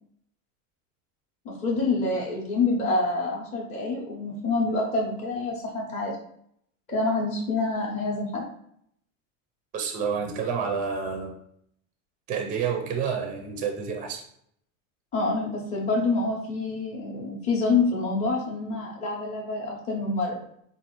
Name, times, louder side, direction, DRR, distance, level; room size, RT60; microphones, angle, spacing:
voice 1, 1.4-6.2 6.9-8.4 15.1-20.4, left 3 dB, 20° left, -4 dB, 0.7 m, -27 dB
voice 2, 9.7-11.3 12.3-14.2, right 6 dB, 20° right, 3 dB, 0.5 m, -29 dB
4.1 x 2.5 x 3.0 m, 0.70 s
supercardioid pair, 145°, 39 cm